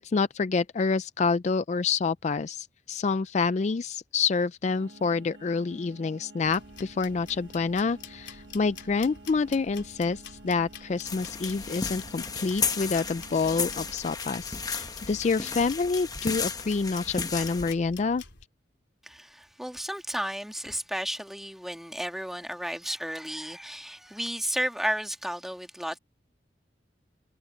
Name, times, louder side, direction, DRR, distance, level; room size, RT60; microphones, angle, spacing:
voice 1, 0.0-18.2, left 4 dB, 40° left, 0.4 m, -28 dB
sound 1, 4.6-13.9, right 2 dB, 80° right, 1.3 m, -50 dB
sound 2, 6.4-18.5, left 7 dB, 90° left, 3.3 m, -48 dB
sound 3, 11.0-17.7, left 5 dB, 20° left, 1.0 m, -34 dB
voice 2, 19.0-26.0, equal, ahead, 1.8 m, -33 dB
head